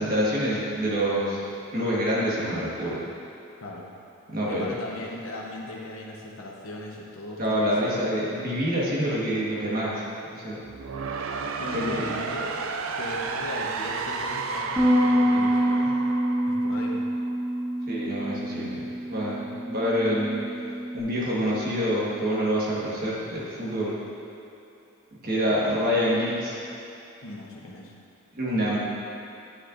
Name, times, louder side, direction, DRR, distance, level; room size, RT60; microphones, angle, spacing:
voice 1, 0.0-1.4 1.7-3.0 4.3-4.7 7.4-10.0 10.3-10.6 11.7-12.1 17.9-20.4 20.9-24.0 25.2-26.6 28.3-28.8, equal, 40° right, -6 dB, 1.4 m, -26 dB
voice 2, 4.5-8.0 11.6-12.5 13.0-16.0 16.5-17.0 25.6-25.8 27.2-27.9, left 1 dB, 70° left, -2 dB, 1.0 m, -38 dB
sound 1, 10.6-17.6, right 4 dB, 65° right, 0.4 m, -32 dB
Bass guitar, 14.8-21.0, equal, 10° right, 0.6 m, -26 dB
9.8 x 6.5 x 2.6 m, 2.8 s
head